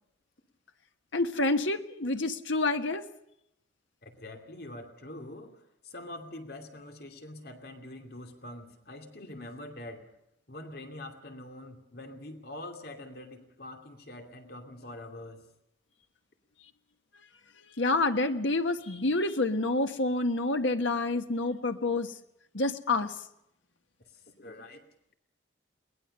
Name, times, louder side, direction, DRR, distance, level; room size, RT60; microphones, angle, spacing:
voice 1, 1.1-3.0 17.8-22.1 22.5-23.1, left 2 dB, 90° left, 7 dB, 1.4 m, -28 dB
voice 2, 4.0-10.1 10.5-15.5 24.4-24.8, left 1 dB, 55° left, 5 dB, 2.6 m, -44 dB
22.5 x 19.5 x 6.7 m, 0.79 s
head